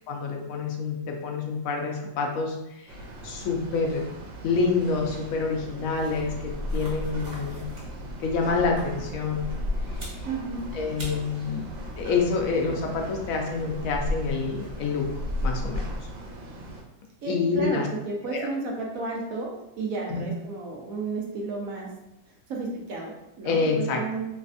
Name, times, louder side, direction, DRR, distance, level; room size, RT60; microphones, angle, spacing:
voice 1, 0.1-2.9 3.2-4.0 4.4-7.7 8.2-9.5 10.0-10.1 10.7-11.6 12.0-15.1 15.4-15.9 17.3-17.9 18.3-18.5 20.1-20.2 23.4-24.0, left 4 dB, 70° left, 1 dB, 0.8 m, -27 dB
sound 1, 2.9-16.8, right 2 dB, 85° right, 1.4 m, -42 dB
sound 2, 5.9-16.3, left 1 dB, 50° right, 1.4 m, -35 dB
voice 2, 10.2-10.7 17.2-19.5 19.8-21.9 22.5-24.3, right 3 dB, 65° right, -1 dB, 0.8 m, -32 dB
3.3 x 3.1 x 2.5 m, 0.86 s
omnidirectional pair, 2.0 m